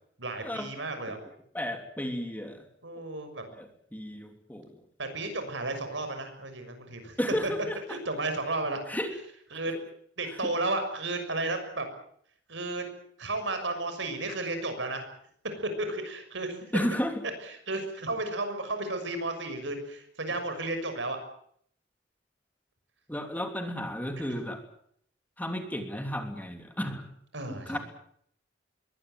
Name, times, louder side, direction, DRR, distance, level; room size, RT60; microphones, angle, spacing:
voice 1, 0.2-1.2 2.8-3.4 5.0-7.1 7.4-7.5 7.9-8.8 9.5-9.7 10.2-11.9 12.5-12.8 13.2-15.0 15.8-16.6 17.7-21.2 27.3-27.8, right 2 dB, 75° right, 7 dB, 6.5 m, -33 dB
voice 2, 1.5-2.6 3.0-3.1 3.5-4.7 7.2-8.0 8.9-9.1 10.3-10.5 16.7-17.1 23.1-24.6 25.4-27.1 27.6-27.8, equal, 10° left, 5 dB, 3.2 m, -33 dB
23.0 x 18.0 x 9.3 m, 0.66 s
head